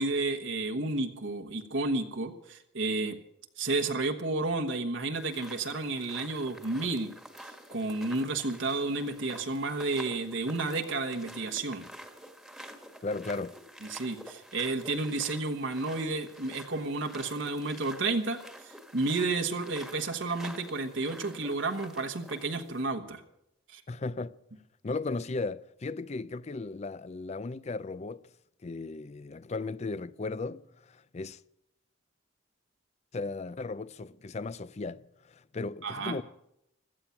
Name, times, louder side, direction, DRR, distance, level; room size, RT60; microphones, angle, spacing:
voice 1, 0.0-3.2 3.6-7.1 7.4-11.9 13.8-23.2 23.7-23.8 35.8-36.2, right 3 dB, 85° right, 1.4 m, -31 dB
sound 1, 5.1-22.8, equal, ahead, 1.5 m, -49 dB
voice 2, 13.0-13.6 23.9-24.3 24.8-28.3 28.6-31.4 33.1-36.2, left 3 dB, 35° left, 0.5 m, -36 dB
16.5 x 13.0 x 5.8 m
head